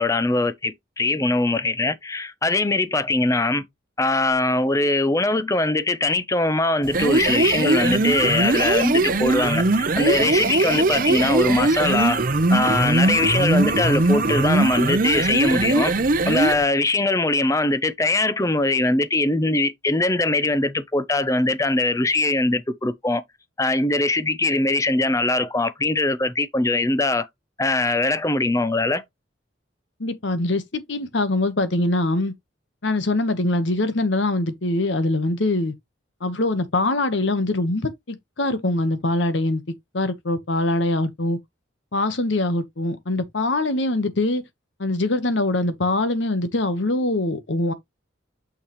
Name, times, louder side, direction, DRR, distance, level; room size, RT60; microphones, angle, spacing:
voice 1, 0.0-3.7 4.0-12.2 12.5-15.9 16.2-23.2 23.6-27.3 27.6-29.0, left 2 dB, 15° left, 0.6 m, -21 dB
sound 1, 6.8-16.6, right 2 dB, 45° right, 0.7 m, -20 dB
voice 2, 30.0-32.3 32.8-35.7 36.2-39.6 39.9-41.4 41.9-44.4 44.8-47.7, left 2 dB, 70° left, 1.1 m, -23 dB
6.5 x 5.9 x 3.0 m
head